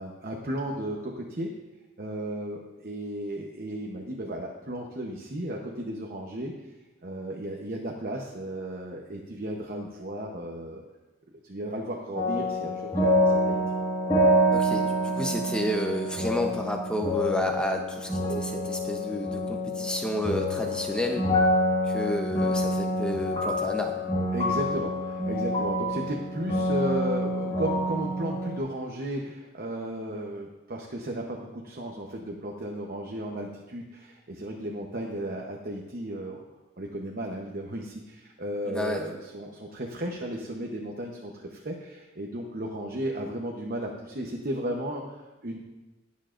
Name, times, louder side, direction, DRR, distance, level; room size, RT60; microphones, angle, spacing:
voice 1, 0.0-1.5 2.0-6.5 7.0-10.8 11.4-12.9 13.2-13.6 24.3-36.4 36.8-45.2 45.4-45.6, right 1 dB, 40° right, 0 dB, 0.9 m, -34 dB
sound 1, 12.2-28.6, equal, 25° left, 1.8 m, -27 dB
voice 2, 14.5-21.2 21.9-24.0 38.6-39.0, equal, 5° left, 2 dB, 0.7 m, -30 dB
19.5 x 7.3 x 2.5 m, 1.1 s
head